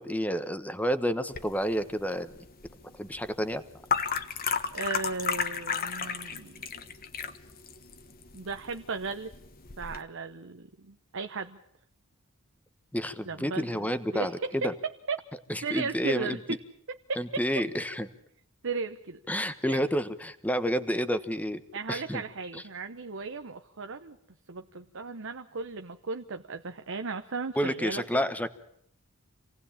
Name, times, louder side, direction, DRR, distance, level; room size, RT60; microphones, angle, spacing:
voice 1, 0.0-2.3 2.9-3.6 12.9-14.7 15.5-16.4 17.2-18.1 19.3-21.6 21.9-22.2 22.5-22.6 27.6-28.5, equal, 5° left, 11 dB, 1.2 m, -30 dB
sound 1, 1.3-10.0, left 6 dB, 45° left, 1.4 m, -34 dB
voice 2, 4.7-6.7 8.3-9.3 9.8-11.6 13.2-13.8 14.1-14.6 15.1-15.2 15.6-16.4 16.9-17.2 18.6-19.2 19.7-19.8 21.7-24.2 24.5-28.3, right 4 dB, 60° right, 7 dB, 0.9 m, -36 dB
27.0 x 18.0 x 8.8 m, 0.71 s
head